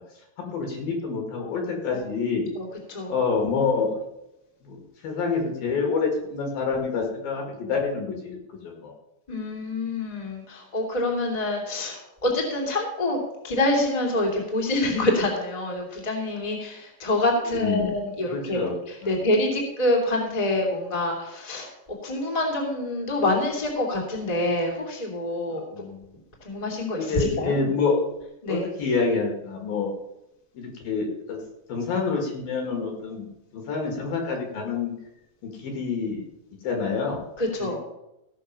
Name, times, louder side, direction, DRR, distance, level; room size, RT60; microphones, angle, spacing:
voice 1, 0.4-2.5 3.1-3.9 4.6-8.4 8.6-8.9 17.5-17.9 18.3-18.7 19.0-19.3 25.5-26.0 27.0-28.1 28.5-29.9 30.5-31.4 31.7-33.3 33.5-34.9 35.4-36.2 36.6-37.2 37.6-37.8, left 4 dB, 55° left, 2 dB, 3.3 m, -27 dB
voice 2, 2.5-3.1 9.3-13.2 13.4-18.6 19.0-21.7 22.0-25.6 26.4-27.5 28.4-28.6 37.4-37.8, left 1 dB, 15° left, 0 dB, 1.6 m, -26 dB
17.0 x 6.3 x 5.7 m, 0.87 s
omnidirectional pair, 5.4 m